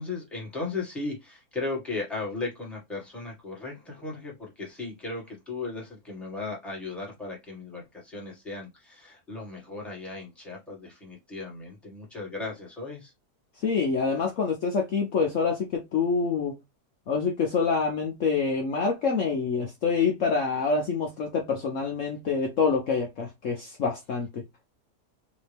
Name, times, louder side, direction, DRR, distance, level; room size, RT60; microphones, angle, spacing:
voice 1, 0.0-13.1, left 3 dB, ahead, 1.4 m, -36 dB
voice 2, 13.6-16.6 17.1-24.4, left 5 dB, 60° left, 1.0 m, -26 dB
4.1 x 2.7 x 3.3 m
omnidirectional pair, 1.7 m